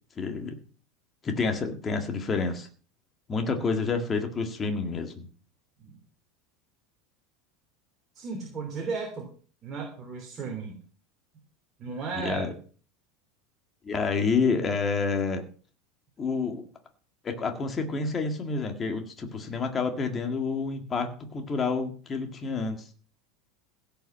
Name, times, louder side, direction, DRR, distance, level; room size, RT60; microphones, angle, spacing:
voice 1, 0.2-0.6 1.2-2.7 3.3-5.3 12.2-12.5 13.8-15.4 16.2-16.6 17.2-22.8, left 4 dB, 20° left, 5 dB, 1.8 m, -28 dB
voice 2, 8.1-9.3 9.6-10.7 11.8-12.5, right 4 dB, 25° right, 1 dB, 3.2 m, -34 dB
16.0 x 5.8 x 7.3 m, 0.41 s
supercardioid pair, 165°, 0 cm